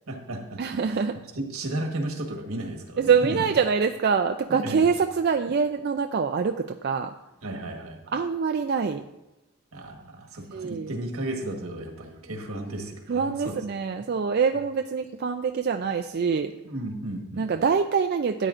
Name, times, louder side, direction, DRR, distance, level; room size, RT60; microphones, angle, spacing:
voice 1, 0.1-0.6 0.9-1.0 1.3-3.4 4.5-4.9 7.4-8.2 9.7-13.6 14.0-14.1 16.6-17.5, right 1 dB, 75° right, 3 dB, 1.4 m, -34 dB
voice 2, 0.6-1.2 3.0-7.1 8.1-9.0 10.5-10.9 13.1-16.5 17.4-18.5, right 6 dB, 45° right, 6 dB, 0.3 m, -25 dB
13.0 x 9.0 x 2.5 m, 0.94 s
head